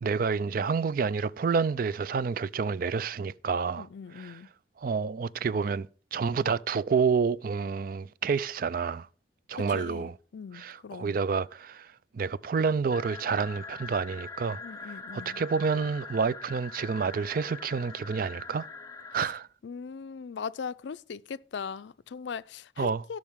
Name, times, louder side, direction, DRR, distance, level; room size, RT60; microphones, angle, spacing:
voice 1, 0.0-3.9 4.2-4.3 4.8-9.1 9.5-10.1 10.6-11.9 12.1-14.6 15.1-18.7 19.1-19.5 22.8-23.0, right 5 dB, 50° right, 0.4 m, -29 dB
voice 2, 3.7-4.5 9.5-11.2 14.6-15.4 19.1-19.3 19.6-23.2, left 6 dB, 75° left, 0.4 m, -40 dB
sound 1, 12.9-19.3, left 4 dB, 20° left, 0.8 m, -43 dB
16.5 x 6.3 x 3.6 m
head